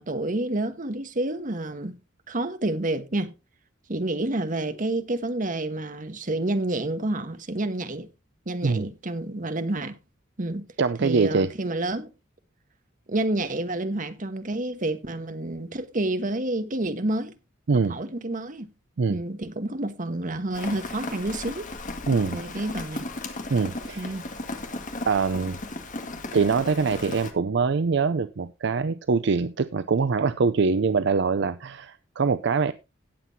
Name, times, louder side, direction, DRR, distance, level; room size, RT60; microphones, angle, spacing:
voice 1, 0.0-2.0 2.3-3.3 3.9-8.1 8.5-10.0 10.4-10.7 11.0-12.1 13.1-17.3 17.9-18.7 19.1-21.7 22.3-23.1 24.0-24.3, right 2 dB, 40° right, 1.2 m, -29 dB
voice 2, 10.8-11.5 17.7-18.0 19.0-19.2 22.1-22.4 23.5-24.1 25.1-25.6 26.3-32.7, right 4 dB, 60° right, 0.5 m, -23 dB
Rain, 20.5-27.3, left 2 dB, 40° left, 1.7 m, -36 dB
17.5 x 7.6 x 2.7 m
head